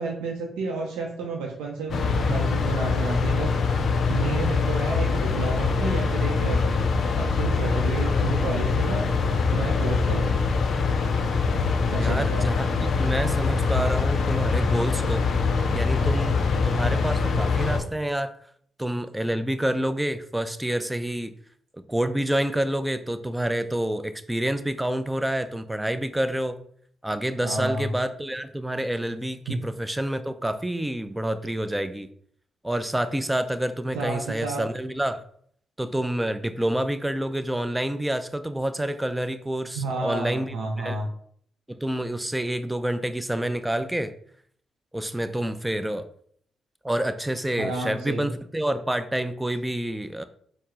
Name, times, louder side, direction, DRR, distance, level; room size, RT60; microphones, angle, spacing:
voice 1, 0.0-3.5 4.1-6.7 7.2-9.0 9.5-10.4 11.9-12.5 27.4-27.9 29.5-29.6 33.9-34.7 39.8-41.1 47.6-48.3, right 3 dB, 85° right, 0 dB, 0.5 m, -30 dB
sound 1, 1.9-17.8, left 4 dB, 60° left, 0.5 m, -24 dB
voice 2, 11.9-15.3 15.7-18.3 18.8-21.3 21.9-26.6 27.0-32.1 32.6-35.2 35.8-41.0 41.7-44.1 44.9-46.1 46.8-50.2, right 1 dB, 10° right, 11 dB, 0.4 m, -28 dB
4.3 x 2.0 x 3.6 m, 0.63 s
hypercardioid pair, 45°, 0 cm